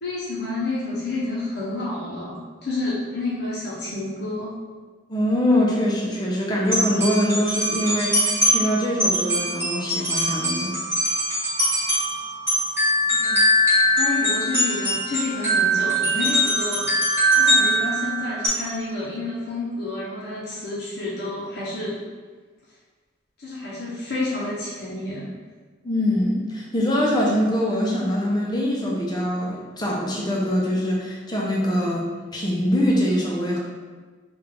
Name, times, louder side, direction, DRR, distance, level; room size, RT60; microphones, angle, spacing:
voice 1, 0.0-4.5 13.1-13.4 13.9-16.9 17.3-22.0 23.4-25.3, left 2 dB, 55° left, -7 dB, 0.7 m, -29 dB
voice 2, 5.1-10.7 25.8-33.6, equal, 20° left, -3 dB, 0.5 m, -23 dB
sound 1, 6.7-18.5, equal, 10° right, 1.1 m, -22 dB
3.2 x 2.4 x 3.6 m, 1.4 s
head